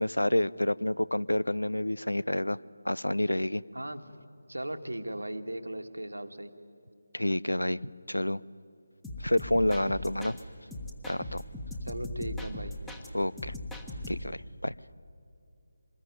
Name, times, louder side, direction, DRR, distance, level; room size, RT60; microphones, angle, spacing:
voice 1, 0.0-2.6 2.8-3.6 7.1-8.4 9.2-10.4 11.1-11.4 13.1-13.5 14.1-14.7, left 1 dB, 90° left, 20 dB, 0.6 m, -29 dB
voice 2, 4.5-6.5 11.8-12.7, right 1 dB, 85° right, 7 dB, 1.7 m, -37 dB
sound 1, 9.0-10.4 10.7-13.1 13.4-14.4, left 1 dB, 5° left, 1.4 m, -39 dB
25.0 x 20.5 x 9.6 m, 2.5 s
figure-of-eight pair, 155°, 0 cm